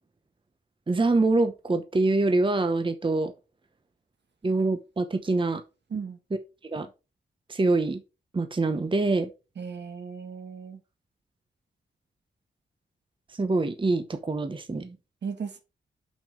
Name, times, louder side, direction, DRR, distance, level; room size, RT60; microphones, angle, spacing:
voice 1, 0.9-3.3 4.4-5.6 6.6-6.9 7.5-8.0 8.3-9.3 13.3-15.0, right 3 dB, 25° right, 0.9 m, -25 dB
voice 2, 9.6-10.8 15.2-15.6, right 6 dB, 65° right, 1.6 m, -36 dB
6.0 x 5.4 x 5.2 m
cardioid pair, 80°, 19 cm